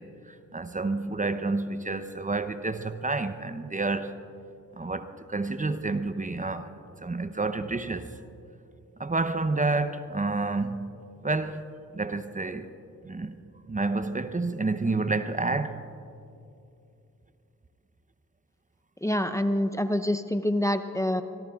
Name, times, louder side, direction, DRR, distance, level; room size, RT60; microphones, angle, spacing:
voice 1, 0.0-4.2 4.7-8.1 9.0-10.9 11.2-11.6 11.9-12.7 13.0-13.4 13.7-15.8, right 3 dB, 25° right, 0.8 m, -29 dB
voice 2, 19.0-21.2, left 1 dB, 10° left, 0.7 m, -26 dB
24.5 x 21.0 x 2.5 m
supercardioid pair, 45°, 32 cm